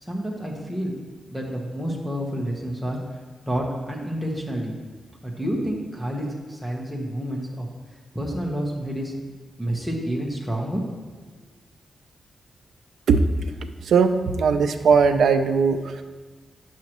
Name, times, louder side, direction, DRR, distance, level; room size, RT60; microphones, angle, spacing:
voice 1, 0.0-0.9 1.3-3.0 3.5-4.7 5.2-7.7 8.1-9.1 9.6-10.8, equal, ahead, -2 dB, 1.0 m, -29 dB
voice 2, 14.4-15.8, right 5 dB, 80° right, 8 dB, 0.4 m, -18 dB
9.2 x 6.3 x 3.0 m, 1.3 s
wide cardioid pair, 140°, 0 cm